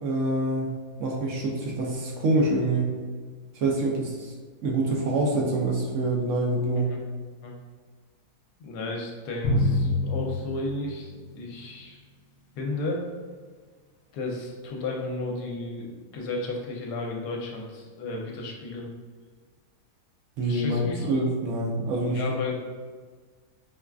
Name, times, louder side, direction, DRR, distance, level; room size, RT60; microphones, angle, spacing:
voice 1, 0.0-3.0 3.5-4.3 4.6-6.9 20.4-22.2, right 2 dB, 70° right, -2 dB, 0.7 m, -26 dB
voice 2, 8.6-12.0 12.6-13.0 14.1-18.9 20.4-21.1 22.1-22.5, left 2 dB, 80° left, 0 dB, 1.2 m, -33 dB
Drum, 9.4-11.8, left 2 dB, 60° left, 0.7 m, -27 dB
4.6 x 2.3 x 2.3 m, 1.5 s
omnidirectional pair, 1.8 m